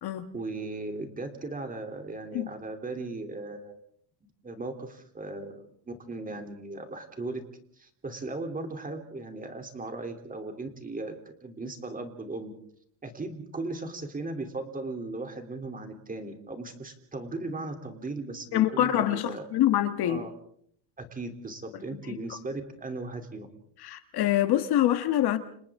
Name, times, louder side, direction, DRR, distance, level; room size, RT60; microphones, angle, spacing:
voice 1, 0.3-3.8 4.4-7.4 7.8-12.5 13.0-19.5 20.0-20.3 21.0-23.5, right 2 dB, 15° right, 3.2 m, -37 dB
voice 2, 18.5-20.2 22.1-22.2 23.8-25.4, left 12 dB, 50° left, 1.5 m, -25 dB
30.0 x 27.5 x 3.7 m
cardioid pair, 145°, 50 cm